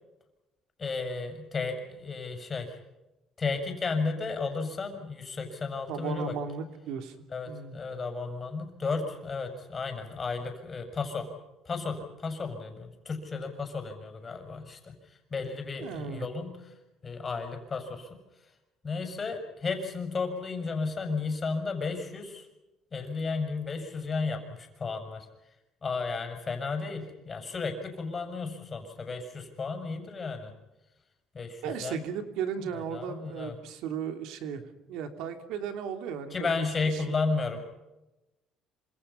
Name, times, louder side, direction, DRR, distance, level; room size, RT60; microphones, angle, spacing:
voice 1, 0.8-2.8 3.4-6.3 7.3-11.4 11.6-16.6 17.0-18.1 18.8-22.5 22.9-25.3 25.8-30.5 31.3-32.0 32.7-33.5 36.3-37.6, left 4 dB, 30° left, 6 dB, 6.6 m, -33 dB
voice 2, 5.9-7.8 15.8-16.3 31.6-34.6 34.9-36.7 36.9-37.0, right 7 dB, 80° right, 7 dB, 2.9 m, -35 dB
27.5 x 26.5 x 5.7 m, 0.99 s
cardioid pair, 120°, 0 cm